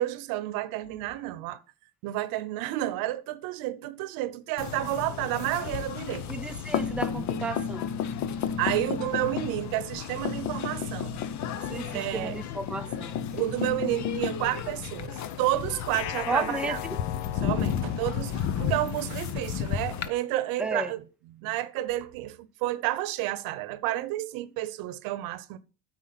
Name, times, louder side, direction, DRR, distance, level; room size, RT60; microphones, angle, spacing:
voice 1, 0.0-1.6 2.0-6.3 8.6-11.2 11.9-12.4 13.3-16.8 17.4-21.0 21.4-25.6, right 15 dB, 75° right, 0.9 m, -30 dB
sound 1, 4.6-20.1, left 8 dB, 55° left, 0.9 m, -32 dB
voice 2, 6.3-7.9 11.7-13.3 16.3-17.0 20.6-20.9, right 2 dB, 5° right, 0.5 m, -33 dB
sound 2, 15.9-19.0, left 15 dB, 75° left, 0.5 m, -39 dB
8.8 x 4.5 x 5.7 m
supercardioid pair, 100°, 35 cm